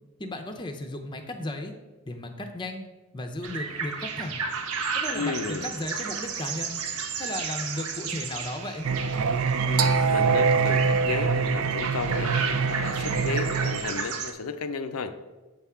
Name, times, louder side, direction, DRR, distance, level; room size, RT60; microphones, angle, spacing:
voice 1, 0.2-1.7 2.1-2.9 3.1-4.4 4.9-6.8 7.2-8.9, left 1 dB, 20° left, 5 dB, 0.6 m, -35 dB
sound 1, 3.4-14.3, right 5 dB, 90° right, 0.8 m, -33 dB
voice 2, 5.1-5.7 9.6-15.2, left 4 dB, 85° left, 9 dB, 0.5 m, -33 dB
Singing, 8.8-13.8, right 5 dB, 70° right, 0.4 m, -24 dB
7.8 x 3.6 x 5.6 m, 1.2 s
head